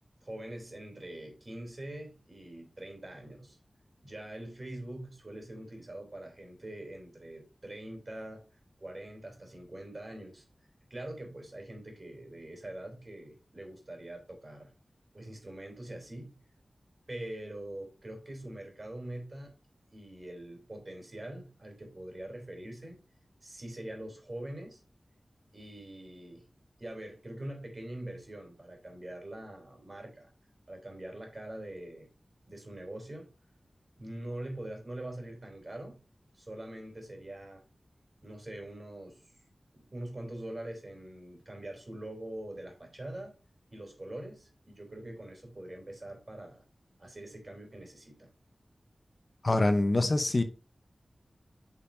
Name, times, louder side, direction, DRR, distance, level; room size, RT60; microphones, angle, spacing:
voice 1, 0.2-3.6 4.0-8.4 8.8-10.4 10.9-14.7 15.1-16.4 17.1-19.5 19.9-23.0 23.4-24.8 25.5-26.5 26.8-30.3 30.7-32.1 32.5-33.3 34.0-36.0 36.3-37.6 38.2-39.2 39.7-43.3 43.7-46.6 47.0-48.3, right 1 dB, 40° right, 3.6 m, -43 dB
voice 2, 49.4-50.4, left 2 dB, 45° left, 1.0 m, -25 dB
9.4 x 5.5 x 2.8 m
wide cardioid pair, 70°, 0 cm